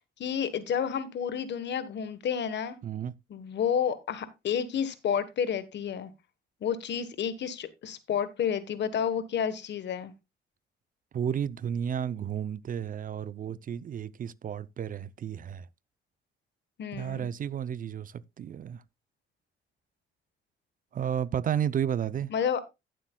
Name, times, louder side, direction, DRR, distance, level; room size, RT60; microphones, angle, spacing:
voice 1, 0.2-2.8 3.3-6.1 6.6-10.1 16.8-17.3 22.3-22.6, left 8 dB, 60° left, 1.2 m, -30 dB
voice 2, 2.8-3.1 11.1-15.7 16.9-18.8 20.9-22.3, right 9 dB, 45° right, 0.5 m, -32 dB
15.0 x 7.5 x 2.3 m
cardioid pair, 90°, 20 cm